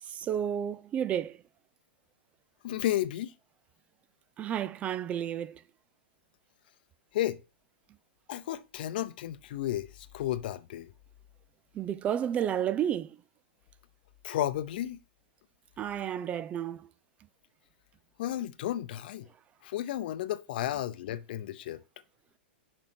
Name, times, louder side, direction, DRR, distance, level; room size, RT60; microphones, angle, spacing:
voice 1, 0.0-1.4 4.4-5.6 11.7-13.2 15.8-16.9, right 9 dB, 25° right, 0.4 m, -31 dB
voice 2, 2.6-3.3 7.1-7.4 8.3-10.9 14.2-15.0 18.2-19.3 19.6-21.8, left 13 dB, 60° left, 0.8 m, -33 dB
6.6 x 4.4 x 6.0 m
hypercardioid pair, 125°, 6 cm